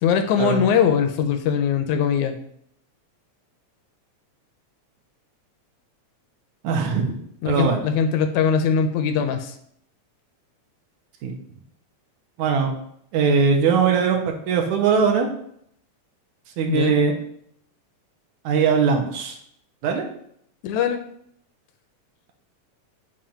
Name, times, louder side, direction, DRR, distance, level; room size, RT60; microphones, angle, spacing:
voice 1, 0.0-2.4 7.4-9.5 16.7-16.9 20.6-21.0, left 7 dB, 80° left, 7 dB, 1.9 m, -21 dB
voice 2, 6.6-7.8 11.2-11.3 12.4-12.7 13.1-15.3 16.6-17.1 18.5-19.4 19.8-20.0, right 6 dB, 80° right, 2 dB, 2.1 m, -20 dB
7.3 x 2.6 x 5.7 m, 0.69 s
omnidirectional pair, 3.4 m